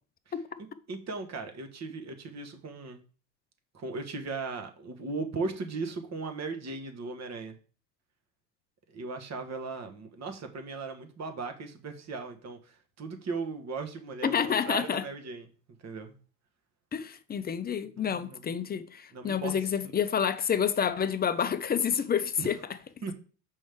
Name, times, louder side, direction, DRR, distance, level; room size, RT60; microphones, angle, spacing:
voice 1, 0.9-3.0 3.7-7.6 8.9-15.5 15.8-16.1 18.0-18.4 19.1-19.5 19.8-19.9 22.4-22.5 23.0-23.1, right 4 dB, 35° right, 1.4 m, -37 dB
voice 2, 14.3-15.1 16.9-22.6, left 7 dB, 20° left, 0.5 m, -29 dB
6.3 x 5.4 x 3.5 m
hypercardioid pair, 85°, 49 cm